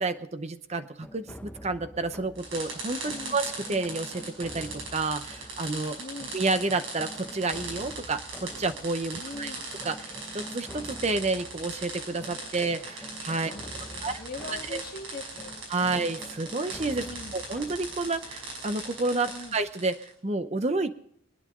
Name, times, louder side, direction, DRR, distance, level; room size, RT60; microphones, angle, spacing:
voice 1, 0.0-6.0 6.3-9.5 9.8-13.5 14.0-14.2 14.5-14.8 15.7-17.1 17.3-20.9, right 3 dB, 30° right, 9 dB, 0.7 m, -30 dB
sound 1, 1.0-19.7, equal, 5° left, 0.7 m, -47 dB
sound 2, 2.4-20.1, right 2 dB, 65° right, 5.7 m, -40 dB
voice 2, 3.1-3.4 6.0-6.3 9.2-9.6 13.5-15.5 17.0-17.3 19.3-19.5, left 3 dB, 45° left, 3 dB, 1.7 m, -41 dB
23.5 x 9.8 x 3.7 m, 0.67 s
head